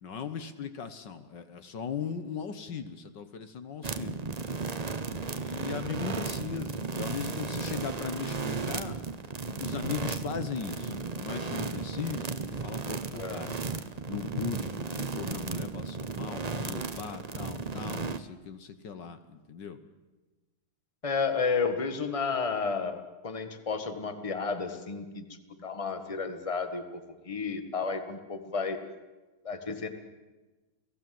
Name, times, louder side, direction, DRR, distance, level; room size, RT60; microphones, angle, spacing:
voice 1, 0.0-4.2 5.2-9.0 9.6-13.5 14.1-19.8, left 6 dB, 65° left, 10 dB, 1.8 m, -38 dB
sound 1, 3.8-18.2, right 4 dB, 35° right, 0.7 m, -35 dB
voice 2, 13.1-13.6 21.0-25.2 25.6-26.8 27.3-28.8 29.4-29.9, left 5 dB, 20° left, 8 dB, 1.6 m, -32 dB
29.5 x 18.0 x 7.8 m, 1.2 s
omnidirectional pair, 2.1 m